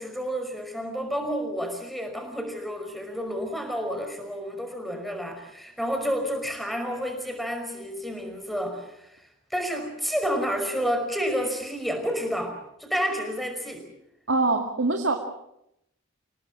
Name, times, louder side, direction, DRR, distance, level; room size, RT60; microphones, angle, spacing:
voice 1, 0.0-9.2 9.5-13.8, equal, ahead, 4 dB, 5.3 m, -30 dB
voice 2, 14.3-15.1, right 3 dB, 65° right, 2 dB, 2.3 m, -23 dB
28.0 x 18.5 x 7.5 m, 0.80 s
head